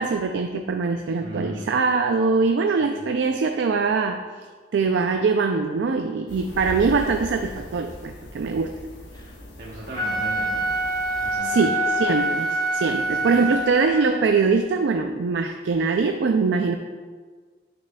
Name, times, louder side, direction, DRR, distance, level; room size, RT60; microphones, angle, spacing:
voice 1, 0.0-4.2 4.7-8.7 11.4-16.8, right 4 dB, 90° right, 6 dB, 0.4 m, -22 dB
voice 2, 1.2-1.7 2.8-3.0 9.6-10.7 11.2-11.7 13.2-13.4, equal, 50° right, -5 dB, 0.9 m, -36 dB
sound 1, 6.3-11.4, left 1 dB, 70° left, 1.0 m, -39 dB
Wind instrument woodwind instrument, 9.8-14.2, right 1 dB, 20° left, 0.7 m, -25 dB
8.9 x 6.5 x 2.2 m, 1.5 s
head